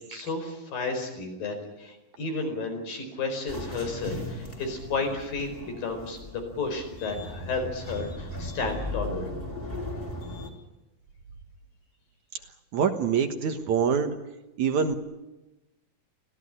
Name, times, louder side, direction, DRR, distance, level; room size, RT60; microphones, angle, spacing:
voice 1, 0.1-9.3, left 3 dB, 75° left, 5 dB, 6.4 m, -32 dB
sound 1, 3.5-10.5, left 1 dB, 15° left, 3.5 m, -37 dB
voice 2, 12.7-14.2 14.6-14.9, right 6 dB, 60° right, 7 dB, 2.5 m, -25 dB
25.5 x 16.5 x 9.9 m, 1.0 s
omnidirectional pair, 4.1 m